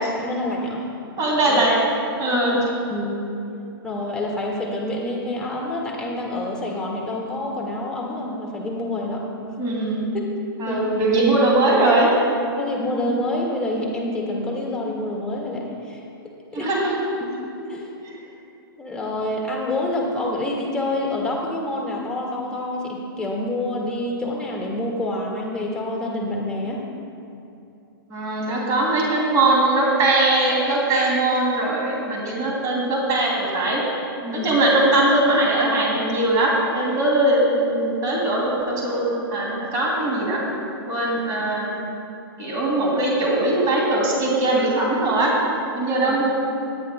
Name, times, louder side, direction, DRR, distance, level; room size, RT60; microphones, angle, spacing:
voice 1, 0.1-0.9 1.5-1.6 2.3-2.6 2.9-3.2 3.8-9.3 10.1-10.3 10.7-11.0 12.6-16.0 16.5-16.7 17.2-17.3 17.6-17.9 18.8-26.8 34.2-34.5 46.0-46.2, left 1 dB, 5° left, -2 dB, 1.9 m, -27 dB
voice 2, 1.2-1.7 2.2-2.6 9.6-10.1 10.6-12.1 16.5-17.1 18.0-18.2 28.1-33.8 34.4-40.4 40.9-41.9 42.4-45.3 45.8-46.3, right 2 dB, 30° right, -3 dB, 2.7 m, -20 dB
20.0 x 10.0 x 2.2 m, 2.7 s
hypercardioid pair, 135°, 12 cm